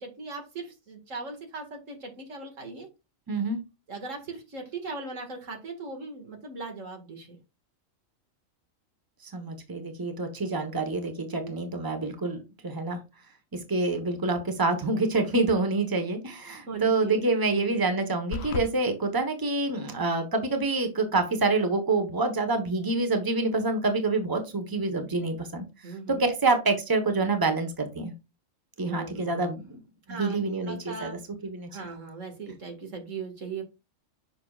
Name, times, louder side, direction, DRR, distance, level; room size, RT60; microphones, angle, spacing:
voice 1, 0.0-2.9 3.9-7.4 11.3-11.8 15.4-15.5 16.4-17.9 25.8-26.3 28.8-29.5 30.1-31.2 31.7-33.6, right 4 dB, 70° right, 3 dB, 2.3 m, -39 dB
voice 2, 3.3-3.6 9.2-13.0 13.5-28.1 28.8-29.8 30.1-31.1 31.4-31.7, right 3 dB, 15° right, 6 dB, 1.2 m, -27 dB
sound 1, 18.3-18.7, left 4 dB, 60° left, 0.9 m, -32 dB
7.7 x 6.0 x 2.4 m, 0.26 s
omnidirectional pair, 1.4 m